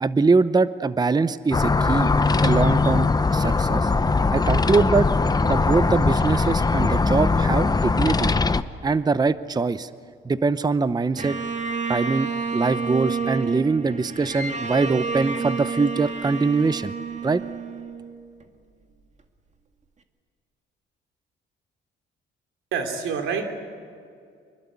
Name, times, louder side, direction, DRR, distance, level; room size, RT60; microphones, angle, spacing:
voice 1, 0.0-2.1 2.4-3.1 3.3-3.9 4.3-5.1 5.4-8.3 8.8-9.9 10.2-11.4 11.9-16.9 17.2-17.4, right 4 dB, 20° right, 14 dB, 0.7 m, -22 dB
sound 1, 1.5-8.6, left 3 dB, 20° left, 0.8 m, -20 dB
Bowed string instrument, 11.2-18.4, right 5 dB, 35° right, 2.0 m, -30 dB
voice 2, 22.7-23.5, right 6 dB, 90° right, 5 dB, 2.9 m, -27 dB
25.5 x 22.0 x 8.6 m, 2.3 s
cardioid pair, 90°, 20 cm